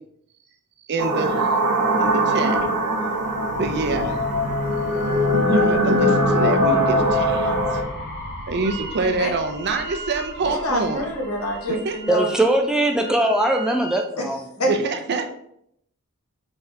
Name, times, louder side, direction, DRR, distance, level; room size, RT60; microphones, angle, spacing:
voice 1, 0.9-1.4 2.0-2.6 3.6-4.2 5.5-7.8 8.5-11.0 11.7-12.0 14.7-15.3, right 3 dB, 50° right, 5 dB, 0.6 m, -26 dB
sound 1, 1.0-7.8, equal, 85° right, 0.8 m, -21 dB
sound 2, 2.1-12.7, left 1 dB, 50° left, 1.4 m, -36 dB
Wind instrument woodwind instrument, 8.6-9.0 9.3-14.1, right 2 dB, 25° right, 0.9 m, -39 dB
voice 2, 10.4-12.4 14.2-14.3 14.6-14.7, equal, 70° left, 1 dB, 1.1 m, -26 dB
voice 3, 12.1-14.4, right 1 dB, 5° right, 3 dB, 0.3 m, -20 dB
4.3 x 3.5 x 3.3 m, 0.72 s
head